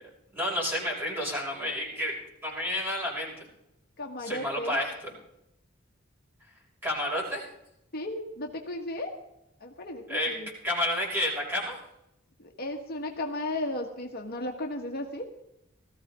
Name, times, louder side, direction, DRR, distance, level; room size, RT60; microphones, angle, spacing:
voice 1, 0.3-2.2 2.4-3.3 4.2-4.9 6.8-7.4 10.1-10.3 10.6-11.8, left 1 dB, 10° right, -5 dB, 6.1 m, -30 dB
voice 2, 4.0-4.8 7.9-9.1 9.6-10.5 12.4-15.3, left 1 dB, 50° left, 2 dB, 1.6 m, -35 dB
19.0 x 14.5 x 3.7 m, 0.83 s
head